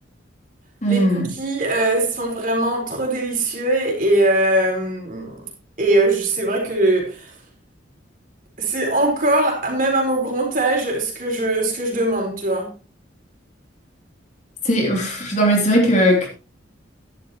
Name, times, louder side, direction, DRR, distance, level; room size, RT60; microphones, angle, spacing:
voice 1, 0.8-1.3 14.6-16.3, equal, 40° left, 3.1 m, -18 dB
voice 2, 1.4-5.4 5.8-7.3 8.6-12.7, right 1 dB, 45° right, 4.4 m, -21 dB
12.5 x 11.0 x 3.1 m
head